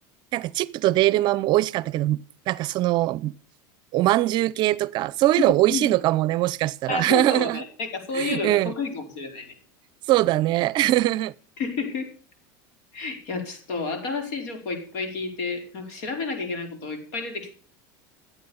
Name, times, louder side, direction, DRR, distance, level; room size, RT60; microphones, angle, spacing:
voice 1, 0.3-2.2 2.5-3.3 3.9-7.6 8.1-8.7 10.1-11.3, right 15 dB, 50° right, 0.6 m, -22 dB
voice 2, 5.4-5.9 6.9-9.5 11.6-12.1 12.9-17.5, left 4 dB, 70° left, 4.8 m, -30 dB
15.5 x 8.3 x 7.1 m
supercardioid pair, 125°, 10 cm